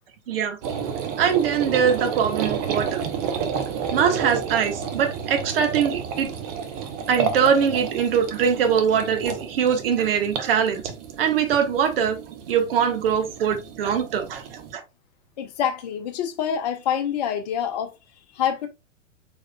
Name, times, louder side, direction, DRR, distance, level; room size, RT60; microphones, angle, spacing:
voice 1, 0.3-0.6 1.2-3.0 3.3-3.6 3.9-6.3 7.1-10.8 11.2-12.2 12.5-14.6, right 7 dB, 50° right, 1.2 m, -22 dB
sound 1, 0.6-14.7, right 7 dB, 30° right, 0.7 m, -31 dB
voice 2, 15.4-17.9 18.3-18.7, left 9 dB, 35° left, 0.6 m, -26 dB
4.7 x 4.1 x 2.2 m
figure-of-eight pair, 110°, 38 cm